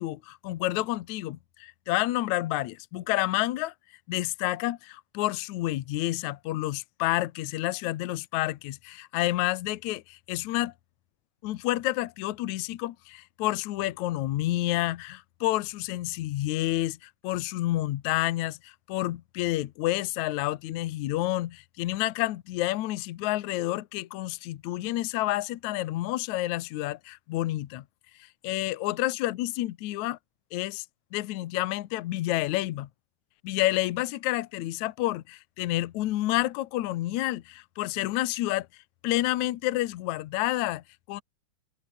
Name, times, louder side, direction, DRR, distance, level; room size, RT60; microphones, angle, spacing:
voice 1, 0.0-3.7 4.1-10.7 11.4-27.9 28.2-30.2 30.5-30.9 31.1-32.9 33.4-38.7 39.0-41.2, left 16 dB, 75° left, 1.8 m, -29 dB
omnidirectional pair, 4.5 m